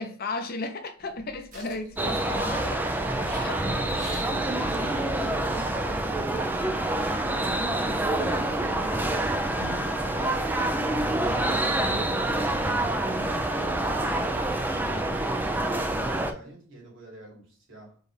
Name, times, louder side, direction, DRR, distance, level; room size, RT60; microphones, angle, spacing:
voice 1, 0.0-2.9 3.4-3.6 9.6-9.8 13.8-14.3, left 3 dB, 55° left, 0.7 m, -35 dB
sound 1, 1.0-6.1, right 2 dB, 45° right, 1.6 m, -47 dB
sound 2, 2.0-16.3, right 1 dB, 10° right, 0.4 m, -27 dB
voice 2, 3.7-9.2 15.5-18.0, right 2 dB, 85° right, 2.4 m, -47 dB
Wind instrument woodwind instrument, 6.4-10.3, left 5 dB, 35° left, 1.1 m, -45 dB
4.4 x 3.2 x 3.3 m
head